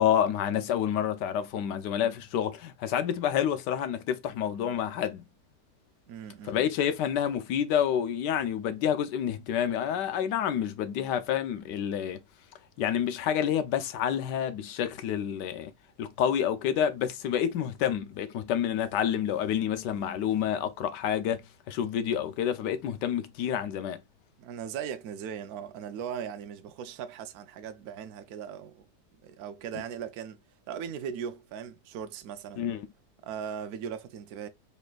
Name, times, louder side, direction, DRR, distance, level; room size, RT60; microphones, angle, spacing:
voice 1, 0.0-5.2 6.4-12.2 12.8-15.7 16.0-21.4 21.7-24.0 32.6-32.9, left 9 dB, 85° left, 1.3 m, -28 dB
voice 2, 6.1-6.6 24.4-28.9 29.2-32.6 33.2-34.5, right 8 dB, 70° right, 1.0 m, -38 dB
4.2 x 3.2 x 2.3 m
omnidirectional pair, 1.8 m